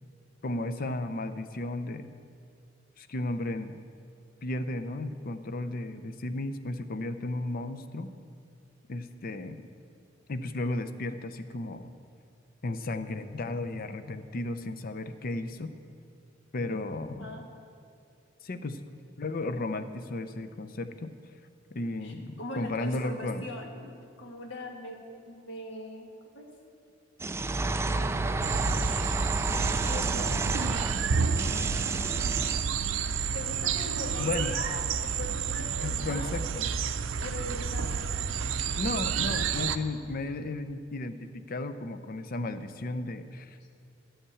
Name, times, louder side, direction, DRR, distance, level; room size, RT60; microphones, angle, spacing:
voice 1, 0.4-2.1 3.0-3.8 4.4-8.1 8.9-9.6 10.3-11.9 12.6-15.7 16.5-17.4 18.4-18.8 19.2-21.1 21.7-23.5 34.2-34.6 35.8-36.7 38.8-43.6, left 2 dB, 50° left, 10 dB, 0.6 m, -34 dB
voice 2, 22.0-25.0 25.3-26.1 26.3-26.5 27.8-28.5 29.8-31.1 33.3-36.3 37.2-38.1, left 1 dB, 70° left, 1 dB, 1.6 m, -41 dB
sound 1, 27.2-32.6, right 2 dB, 15° right, 0.3 m, -31 dB
sound 2, 28.4-39.8, right 6 dB, 85° right, 0.5 m, -30 dB
11.5 x 5.5 x 8.5 m, 2.3 s
head